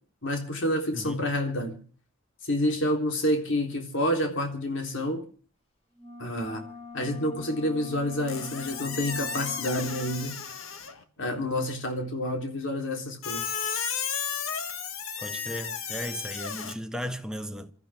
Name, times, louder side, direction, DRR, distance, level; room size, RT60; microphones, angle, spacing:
voice 1, 0.2-1.8 2.4-5.2 6.2-6.6 6.9-10.4 11.2-13.5, left 1 dB, 60° left, 3.7 m, -28 dB
voice 2, 0.9-1.3 15.2-17.7, equal, 5° right, 1.0 m, -36 dB
sound 1, 5.9-10.4, left 4 dB, 30° left, 4.3 m, -44 dB
Squeak, 8.3-11.0 13.2-16.7, left 7 dB, 75° left, 1.6 m, -34 dB
27.0 x 13.5 x 3.6 m
head